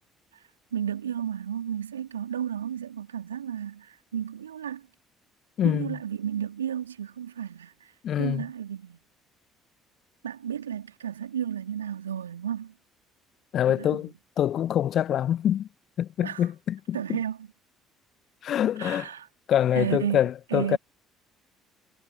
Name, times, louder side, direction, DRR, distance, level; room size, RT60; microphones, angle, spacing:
voice 1, 0.7-4.8 5.6-7.9 8.2-9.0 10.2-12.7 13.7-14.1 16.2-16.4 16.9-17.4 18.8-19.3 19.7-20.8, right 9 dB, 85° right, 4.1 m, -33 dB
voice 2, 5.6-6.0 8.0-8.5 13.5-15.7 16.0-17.2 18.4-19.1 19.5-20.8, left 10 dB, 50° left, 1.3 m, -25 dB
figure-of-eight pair, 55°, 0 cm